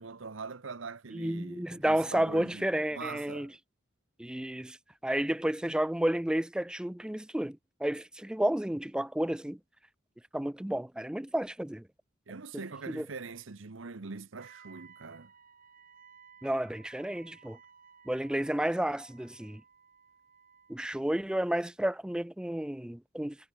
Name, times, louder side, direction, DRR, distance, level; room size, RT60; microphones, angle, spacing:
voice 1, 0.0-3.5 12.3-15.3, right 4 dB, 75° right, 0.9 m, -43 dB
voice 2, 1.1-3.5 4.2-4.8 5.0-9.6 10.3-11.8 12.9-13.1 16.4-17.6 18.1-19.6 20.7-23.4, right 1 dB, 5° right, 0.3 m, -31 dB
Wind instrument woodwind instrument, 14.4-20.8, right 6 dB, 45° right, 3.5 m, -57 dB
head